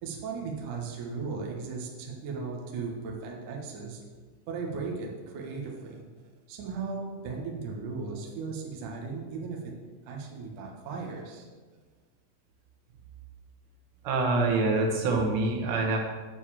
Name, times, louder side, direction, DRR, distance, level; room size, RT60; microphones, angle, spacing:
voice 1, 0.0-4.0 4.5-6.1 6.5-9.7 10.0-11.5, right 4 dB, 90° right, 0 dB, 1.7 m, -36 dB
voice 2, 14.0-16.0, right 3 dB, 70° right, 1 dB, 3.1 m, -25 dB
9.2 x 4.8 x 7.4 m, 1.4 s
omnidirectional pair, 5.9 m